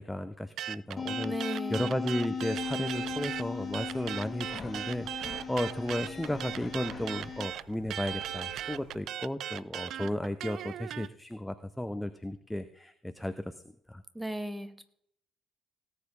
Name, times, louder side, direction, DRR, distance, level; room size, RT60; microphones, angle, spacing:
voice 1, 0.0-1.3 1.7-13.5 13.9-14.0, left 1 dB, 5° left, 11 dB, 0.8 m, -34 dB
sound 1, 0.6-3.4 3.7-11.1, right 11 dB, 55° right, 0.4 m, -38 dB
sound 2, 1.0-7.5, left 6 dB, 30° left, 2.3 m, -38 dB
voice 2, 1.2-1.9 14.1-14.8, right 1 dB, 10° right, 10 dB, 1.6 m, -36 dB
sound 3, 2.4-9.0, right 2 dB, 70° right, 2.3 m, -52 dB
18.0 x 8.5 x 3.9 m, 0.69 s
figure-of-eight pair, 50°, 0 cm